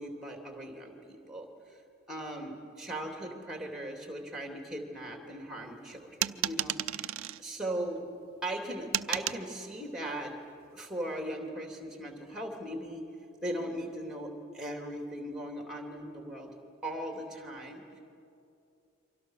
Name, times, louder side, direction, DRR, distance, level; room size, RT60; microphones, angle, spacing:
voice 1, 0.0-1.5 2.1-8.0 8.4-10.3 10.7-13.1 13.4-16.5 16.8-18.0, right 1 dB, 5° right, 3 dB, 3.1 m, -38 dB
sound 1, 6.2-7.4 8.9-9.4, right 13 dB, 70° right, 0.5 m, -32 dB
29.0 x 24.5 x 6.6 m, 2.6 s
head